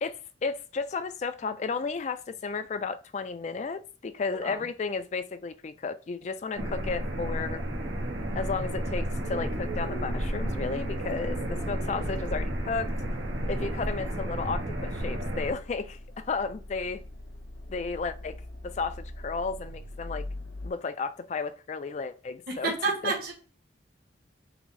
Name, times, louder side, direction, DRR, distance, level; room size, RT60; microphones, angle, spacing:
voice 1, 0.0-7.6 8.3-12.9 13.5-17.0 17.7-18.4 18.6-20.3 20.6-22.7 23.0-23.1, left 4 dB, 40° left, 0.3 m, -33 dB
voice 2, 4.3-4.6 22.5-23.3, right 3 dB, 50° right, 1.1 m, -30 dB
sound 1, 6.5-15.5, right 1 dB, 90° right, 0.9 m, -32 dB
Accelerating revving vroom, 11.1-20.7, left 1 dB, 80° left, 0.8 m, -43 dB
5.9 x 2.0 x 3.9 m
head